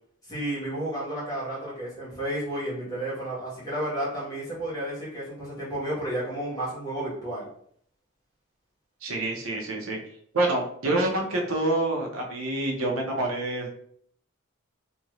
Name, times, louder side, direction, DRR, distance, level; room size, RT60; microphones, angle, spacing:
voice 1, 0.3-7.4, right 1 dB, 20° left, -9 dB, 1.3 m, -32 dB
voice 2, 9.0-10.0 10.3-13.7, right 2 dB, 80° right, 1 dB, 0.7 m, -27 dB
2.7 x 2.5 x 3.0 m, 0.65 s
head